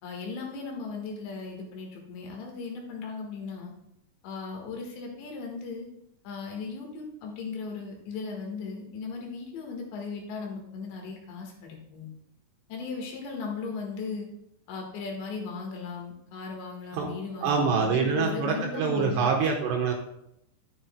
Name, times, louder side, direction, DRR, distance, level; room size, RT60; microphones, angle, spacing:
voice 1, 0.0-3.7 4.2-5.9 6.2-12.1 12.7-14.3 14.7-19.4, left 4 dB, 70° left, 1 dB, 3.4 m, -37 dB
voice 2, 17.4-19.9, right 5 dB, 75° right, 1 dB, 2.9 m, -25 dB
12.5 x 9.1 x 2.2 m, 0.79 s
omnidirectional pair, 5.6 m